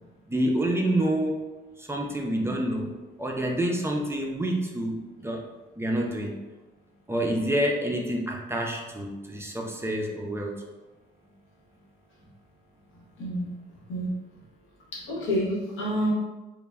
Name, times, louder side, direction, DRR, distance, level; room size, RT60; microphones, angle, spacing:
voice 1, 0.3-1.5 1.8-5.4 5.8-6.4 7.1-10.5, right 1 dB, 15° right, 0 dB, 0.4 m, -28 dB
voice 2, 13.2-13.5 13.9-14.1 14.9-16.1, equal, 85° left, -4 dB, 0.9 m, -28 dB
2.1 x 2.1 x 3.3 m, 1.1 s
cardioid pair, 90°, 20 cm